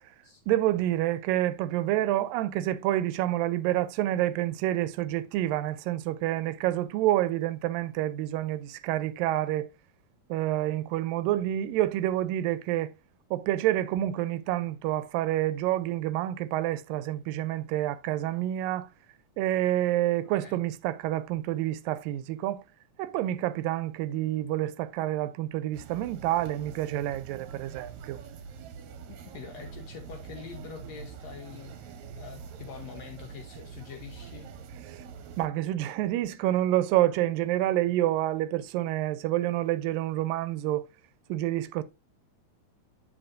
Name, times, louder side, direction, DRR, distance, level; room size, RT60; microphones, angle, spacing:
voice 1, 0.5-9.7 10.3-12.9 13.3-18.9 19.4-22.6 23.0-28.2 34.9-35.0 35.4-40.8 41.3-41.8, right 14 dB, 85° right, 2.3 m, -28 dB
sound 1, 25.7-35.5, right 6 dB, 70° right, 1.9 m, -45 dB
voice 2, 29.1-34.5, left 7 dB, 70° left, 1.7 m, -45 dB
7.7 x 7.5 x 2.5 m
omnidirectional pair, 4.0 m